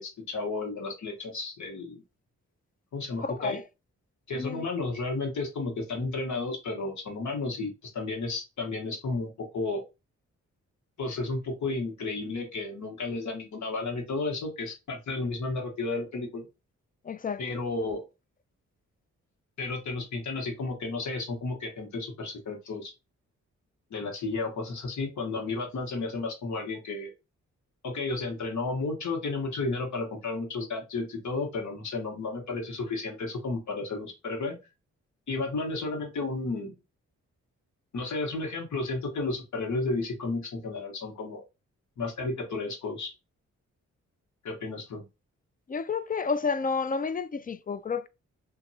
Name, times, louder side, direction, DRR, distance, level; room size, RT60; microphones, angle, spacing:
voice 1, 0.0-2.0 2.9-3.6 4.3-9.8 11.0-16.5 17.4-18.0 19.6-22.9 23.9-27.1 27.8-34.6 35.3-36.7 37.9-41.4 42.0-43.1 44.4-45.0, left 3 dB, 70° left, 1.3 m, -32 dB
voice 2, 3.2-3.6 4.3-4.6 17.1-17.4 45.7-48.1, left 5 dB, 30° left, 0.4 m, -30 dB
2.9 x 2.6 x 2.7 m
cardioid pair, 60°, 30 cm